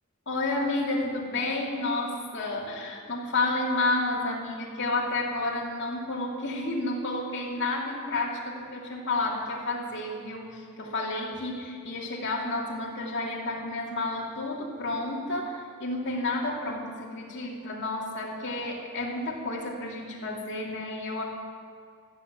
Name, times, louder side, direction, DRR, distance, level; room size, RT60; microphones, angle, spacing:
voice 1, 0.3-21.2, left 2 dB, 55° left, -3 dB, 2.7 m, -31 dB
14.5 x 8.1 x 8.5 m, 2.2 s
head